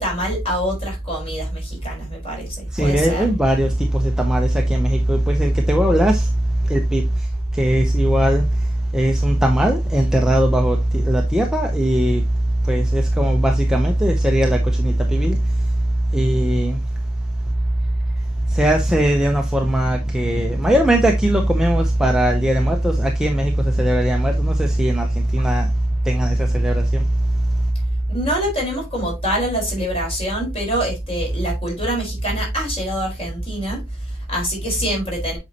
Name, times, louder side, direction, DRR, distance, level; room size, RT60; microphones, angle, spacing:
voice 1, 0.0-3.2 28.1-35.4, equal, 25° left, 4.3 m, -25 dB
voice 2, 2.7-6.3 6.7-7.0 7.5-8.5 8.9-12.2 12.7-15.4 16.1-16.8 18.5-25.7 26.1-27.0, right 1 dB, 5° right, 0.7 m, -18 dB
7.9 x 5.3 x 2.8 m
head